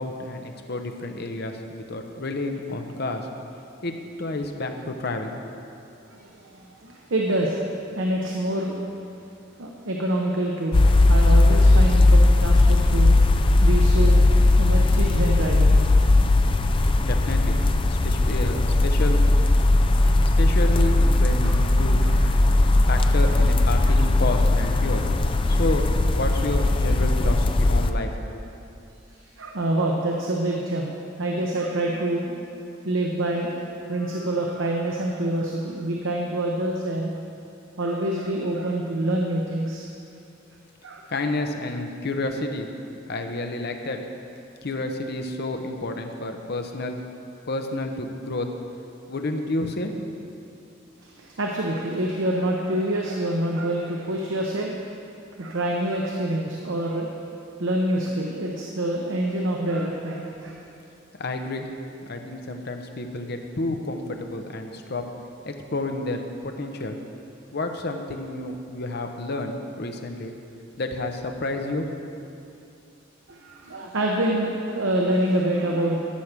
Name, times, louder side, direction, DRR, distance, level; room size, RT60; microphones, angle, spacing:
voice 1, 0.0-3.3 3.8-5.5 17.0-17.6 17.9-19.3 20.4-22.0 22.8-25.0 25.5-25.9 26.2-28.1 41.1-42.7 43.1-44.0 44.6-47.0 47.5-48.5 49.1-49.9 61.2-61.7 62.1-65.0 65.5-67.0 67.5-70.3 70.8-71.9, left 2 dB, 55° left, 5 dB, 0.8 m, -30 dB
voice 2, 6.1-7.6 7.9-8.7 9.6-14.2 14.5-15.8 21.4-21.6 22.0-22.3 23.9-24.0 29.4-37.1 37.8-39.9 40.8-41.0 51.0-54.7 55.4-57.1 57.6-60.5 73.3-76.0, right 1 dB, 80° right, -1 dB, 0.9 m, -26 dB
sound 1, 10.7-27.9, left 2 dB, 25° left, 0.4 m, -18 dB
11.5 x 6.6 x 6.0 m, 2.6 s
head